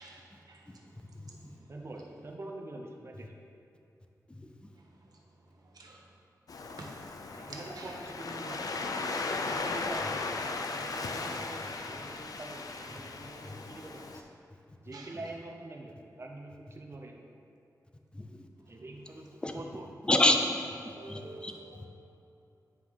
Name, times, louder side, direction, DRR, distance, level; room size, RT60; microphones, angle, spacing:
voice 1, 0.0-1.7 4.7-6.1 6.8-7.9 14.9-15.2 20.8-21.9, right 2 dB, 80° right, -1 dB, 1.0 m, -51 dB
voice 2, 0.7-1.6 4.3-4.5 13.5-13.6 18.1-18.3 19.4-19.5 20.1-20.4 21.0-21.5, left 1 dB, 15° left, 4 dB, 0.5 m, -29 dB
voice 3, 1.7-3.3 7.3-8.8 9.2-14.3 14.8-17.3 18.7-19.9, right 2 dB, 40° right, 1 dB, 0.8 m, -45 dB
Waves surf, 6.5-14.2, left 3 dB, 70° left, 0.5 m, -37 dB
9.2 x 4.7 x 3.7 m, 2.7 s
wide cardioid pair, 95°, 7 cm